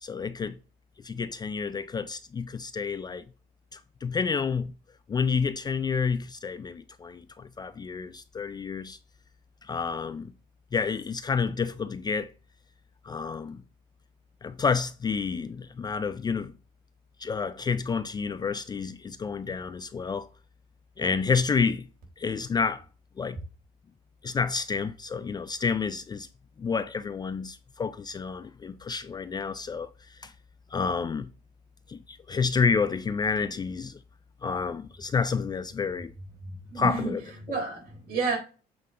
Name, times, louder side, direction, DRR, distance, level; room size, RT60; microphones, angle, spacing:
voice 1, 0.0-0.6 1.0-3.2 3.7-4.7 5.1-9.0 9.7-10.3 10.7-12.3 13.0-13.6 14.4-16.5 17.2-20.3 21.0-21.9 22.2-22.8 23.2-23.4 24.2-26.3 26.6-30.3 30.7-31.3 31.9-34.0 34.4-36.1 36.7-37.2 37.5-37.6, left 5 dB, 25° left, 0.3 m, -29 dB
voice 2, 36.7-37.1 37.4-38.4, right 4 dB, 60° right, 3.9 m, -30 dB
7.7 x 3.6 x 3.8 m
cardioid pair, 110°, 17 cm